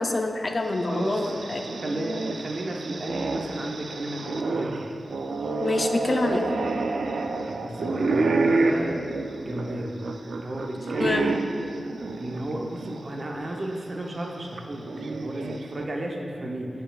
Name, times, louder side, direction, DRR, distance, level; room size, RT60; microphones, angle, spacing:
voice 1, 0.0-1.7 5.6-6.6 11.0-11.3, left 2 dB, 40° left, 4 dB, 0.4 m, -26 dB
sound 1, 0.7-13.0 13.4-13.5 14.6-15.8, right 3 dB, 80° right, 0.3 m, -29 dB
voice 2, 0.9-1.2 1.8-4.9 7.4-9.0 9.3-10.0 10.4-11.4 12.0-16.7, right 1 dB, 40° right, 0 dB, 0.7 m, -33 dB
7.6 x 6.8 x 2.3 m, 2.4 s
wide cardioid pair, 130°, 0 cm